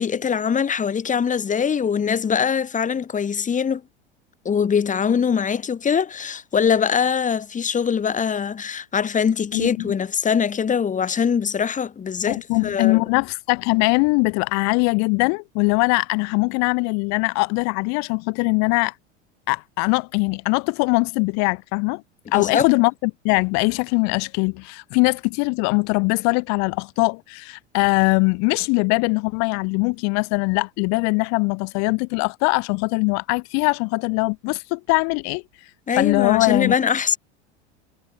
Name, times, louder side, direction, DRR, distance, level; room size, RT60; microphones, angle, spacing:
voice 1, 0.0-3.8 4.4-13.0 22.3-22.7 35.9-37.2, left 7 dB, 20° left, 2.5 m, -22 dB
voice 2, 9.5-9.9 12.3-18.9 19.5-22.0 22.3-35.4 35.9-36.7, left 33 dB, 50° left, 1.8 m, -21 dB
figure-of-eight pair, 80°, 34 cm